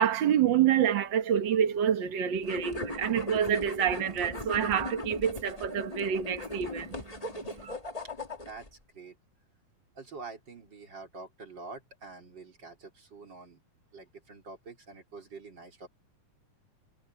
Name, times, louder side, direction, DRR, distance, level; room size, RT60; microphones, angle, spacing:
voice 1, 0.0-6.9 7.6-7.7, right 9 dB, 55° right, 1.3 m, -27 dB
sound 1, 2.4-8.7, left 1 dB, 15° left, 1.6 m, -38 dB
voice 2, 8.4-9.2 9.9-13.6 13.9-15.9, right 4 dB, 35° right, 4.6 m, -46 dB
omnidirectional pair, 3.5 m